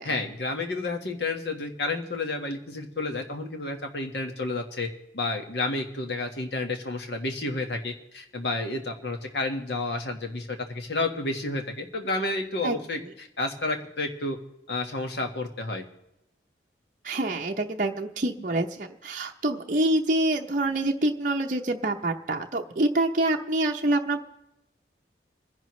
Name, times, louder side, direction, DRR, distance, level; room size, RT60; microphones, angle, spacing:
voice 1, 0.0-4.9 5.1-14.4 14.7-15.8, left 2 dB, 80° left, 4 dB, 1.6 m, -30 dB
voice 2, 17.0-24.2, right 2 dB, 45° right, 1 dB, 0.7 m, -26 dB
27.5 x 10.5 x 3.2 m, 0.88 s
head